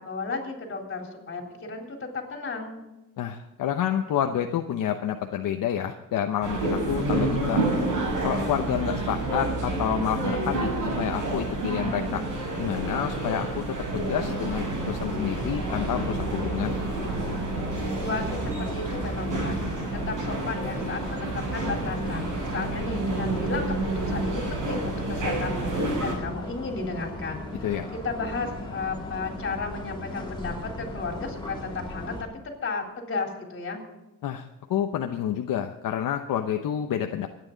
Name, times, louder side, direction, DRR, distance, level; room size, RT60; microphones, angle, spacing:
voice 1, 0.0-2.8 18.0-19.8 20.1-27.4 28.0-32.1 32.6-33.8, left 3 dB, 40° left, 1 dB, 3.7 m, -33 dB
voice 2, 3.2-7.7 8.2-12.2 12.6-16.8 27.6-27.9 34.2-37.3, left 10 dB, 80° left, 4 dB, 0.9 m, -29 dB
sound 1, 6.4-26.1, right 2 dB, 65° right, 6.3 m, -29 dB
sound 2, 15.0-32.2, left 1 dB, 15° left, 3.7 m, -37 dB
26.5 x 9.7 x 3.9 m, 1.0 s
cardioid pair, 120°, 32 cm